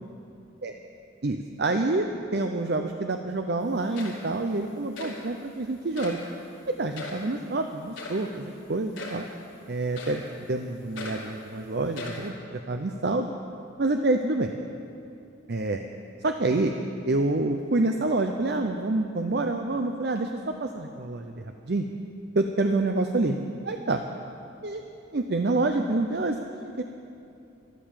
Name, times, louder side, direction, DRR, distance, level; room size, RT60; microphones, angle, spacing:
voice 1, 1.2-6.2 6.7-9.2 9.7-13.3 13.8-14.5 15.5-15.8 16.2-16.7 17.1-21.9 22.3-23.4 23.6-24.0 24.6-24.8 25.1-26.8, right 2 dB, 55° right, 5 dB, 0.6 m, -27 dB
sound 1, 3.6-3.7 3.9-4.4 5.0-5.2 6.0-6.3 6.9-7.2 8.0-8.3 8.9-9.3 10.0-10.3 11.0-11.3 11.9-12.3, left 3 dB, 85° left, 3.3 m, -39 dB
13.5 x 12.5 x 7.4 m, 2.7 s
head